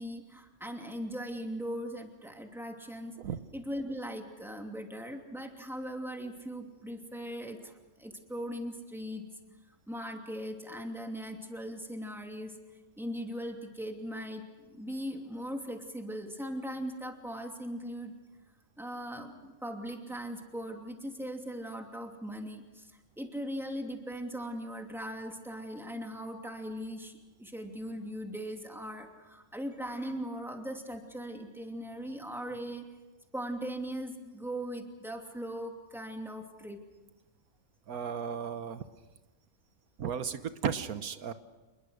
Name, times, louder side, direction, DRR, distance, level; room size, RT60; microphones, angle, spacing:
voice 1, 0.0-3.2 3.5-9.2 9.9-12.6 13.0-18.1 18.8-32.8 33.3-36.8, equal, ahead, 3 dB, 2.7 m, -39 dB
voice 2, 37.9-38.8 40.0-41.3, right 7 dB, 80° right, 11 dB, 1.5 m, -34 dB
27.5 x 21.5 x 6.5 m, 1.2 s
omnidirectional pair, 1.5 m